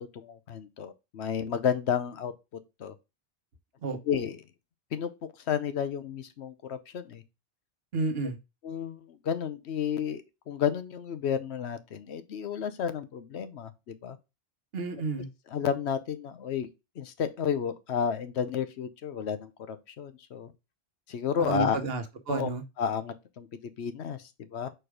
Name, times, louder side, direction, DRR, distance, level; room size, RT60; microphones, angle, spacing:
voice 1, 0.1-2.3 2.8-2.9 4.1-4.4 4.9-7.2 8.6-14.2 15.5-16.7 17.0-20.5 21.1-21.8 22.3-22.5 22.8-24.7, left 8 dB, 85° left, 1.0 m, -32 dB
voice 2, 3.8-4.2 7.9-8.4 14.7-15.3 21.4-22.6, right 3 dB, 65° right, 1.2 m, -31 dB
4.5 x 4.4 x 4.9 m
omnidirectional pair, 1.1 m